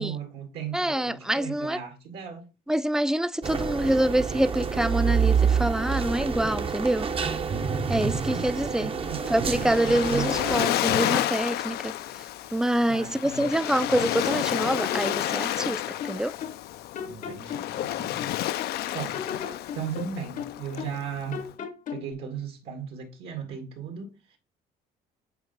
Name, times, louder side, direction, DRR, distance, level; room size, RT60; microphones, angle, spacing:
voice 1, 0.0-2.5 8.3-8.5 8.8-9.3 9.9-10.4 12.9-13.4 17.1-18.3 18.9-19.2 19.7-21.5 21.9-24.4, right 7 dB, 75° right, 2.0 m, -36 dB
voice 2, 0.7-1.8 2.7-7.1 7.9-8.9 9.3-11.9 12.5-16.3, right 1 dB, 5° right, 0.3 m, -26 dB
sound 1, 3.4-10.6, right 6 dB, 35° right, 0.7 m, -27 dB
Waves surf, 9.1-21.5, left 13 dB, 70° left, 0.5 m, -30 dB
sound 2, 13.4-14.4 14.8-16.7 16.9-18.8 19.1-21.0 21.3-22.1, left 7 dB, 50° left, 0.8 m, -37 dB
8.1 x 4.4 x 3.9 m
cardioid pair, 110°, 17 cm